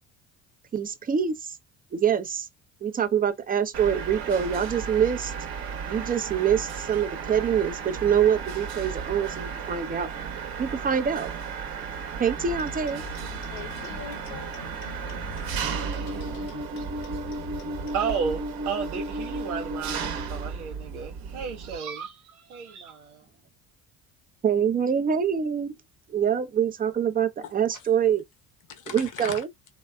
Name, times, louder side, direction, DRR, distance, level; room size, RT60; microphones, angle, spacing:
voice 1, 0.7-1.6 1.9-2.5 2.8-5.3 5.9-10.1 10.6-11.3 12.2-13.0 24.4-25.7 26.1-28.2 28.9-29.5, right 8 dB, 20° right, 0.6 m, -25 dB
Mechanisms, 3.7-21.8, right 5 dB, 55° right, 1.0 m, -34 dB
sound 1, 12.4-18.0, left 12 dB, 65° left, 0.6 m, -44 dB
voice 2, 13.5-14.5 27.4-27.8 28.7-29.4, left 7 dB, 45° left, 1.0 m, -40 dB
voice 3, 17.9-23.2, right 6 dB, 85° right, 0.6 m, -33 dB
3.2 x 2.7 x 2.2 m
hypercardioid pair, 55°, 43 cm